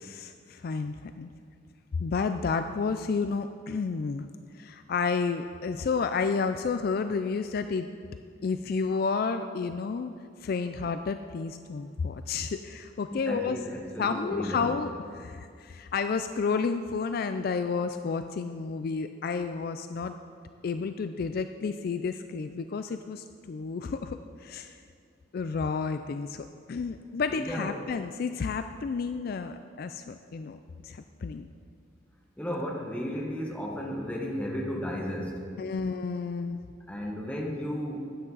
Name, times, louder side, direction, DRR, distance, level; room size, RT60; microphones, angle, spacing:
voice 1, 0.0-1.3 2.0-4.3 4.5-7.9 8.4-13.6 14.0-20.1 20.6-24.8 25.3-31.5 35.6-36.6, left 5 dB, 55° left, 9 dB, 0.3 m, -31 dB
voice 2, 13.1-14.7 27.3-27.7 32.4-35.4 36.9-38.1, equal, 10° left, -1 dB, 1.4 m, -34 dB
13.0 x 9.1 x 4.0 m, 2.4 s
head